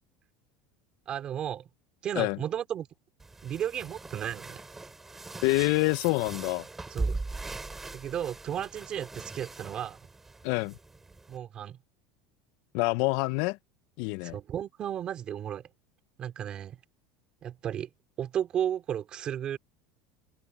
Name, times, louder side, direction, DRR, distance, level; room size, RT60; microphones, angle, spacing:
voice 1, 1.1-1.7 2.0-2.9 3.4-4.6 6.9-7.2 7.9-10.0 11.3-11.8 14.2-15.7 16.2-16.8 17.4-17.9 18.2-19.6, right 10 dB, 35° right, 3.2 m, -34 dB
sound 1, 3.2-11.4, right 3 dB, 10° right, 6.4 m, -40 dB
voice 2, 5.4-6.6 10.4-10.8 12.7-13.6 14.0-14.4, left 23 dB, 65° left, 0.6 m, -26 dB
supercardioid pair, 135°, 3 cm